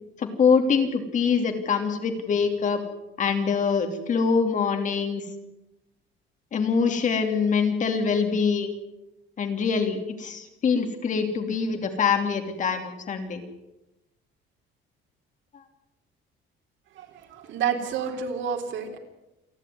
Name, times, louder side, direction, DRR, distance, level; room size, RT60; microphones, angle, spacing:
voice 1, 0.2-2.8 3.2-5.2 6.5-8.7 9.4-13.4, left 5 dB, 40° left, 5 dB, 3.1 m, -24 dB
voice 2, 17.0-19.0, right 7 dB, 70° right, 4 dB, 3.8 m, -29 dB
28.5 x 11.5 x 9.6 m, 0.95 s
cardioid pair, 160°, 20 cm